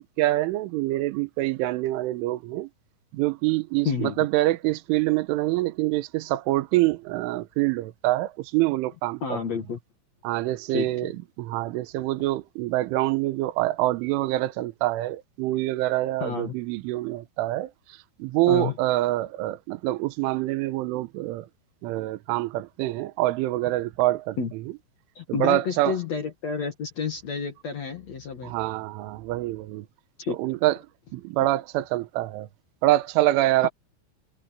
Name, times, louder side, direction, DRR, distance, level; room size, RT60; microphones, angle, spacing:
voice 1, 0.0-2.7 3.1-9.2 10.2-11.1 11.4-17.7 18.2-21.5 21.8-24.4 25.3-26.0 28.4-29.9 30.4-30.8 31.1-32.5 32.8-33.7, right 17 dB, 80° right, 3.4 m, -25 dB
voice 2, 3.8-4.2 9.2-9.8 10.7-11.1 16.2-16.5 18.5-18.8 24.4-24.5 25.2-28.5 30.2-30.4 33.6-33.7, left 6 dB, 55° left, 2.0 m, -30 dB
omnidirectional pair, 5.7 m